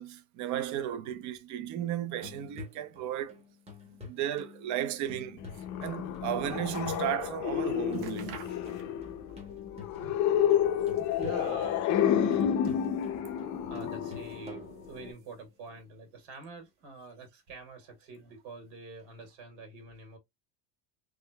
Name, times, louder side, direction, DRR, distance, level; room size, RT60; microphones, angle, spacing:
voice 1, 0.0-3.4 4.0-5.4 5.8-8.4 13.4-13.6, right 11 dB, 40° right, 0.5 m, -34 dB
sound 1, 2.1-15.5 19.0-19.1, left 4 dB, 15° right, 1.0 m, -50 dB
sound 2, 5.4-15.1, left 9 dB, 40° left, 0.5 m, -30 dB
sound 3, 6.0-7.2 7.5-7.6 7.9-9.2 9.5-10.4 10.8-11.6 12.3-13.3 13.8-14.5 14.8-15.5 16.2-16.3, right 7 dB, 60° right, 1.1 m, -49 dB
voice 2, 8.8-9.3 10.2-12.7 13.6-20.2, right 3 dB, 80° right, 2.0 m, -46 dB
3.6 x 3.3 x 2.2 m
cardioid pair, 160°, 45 cm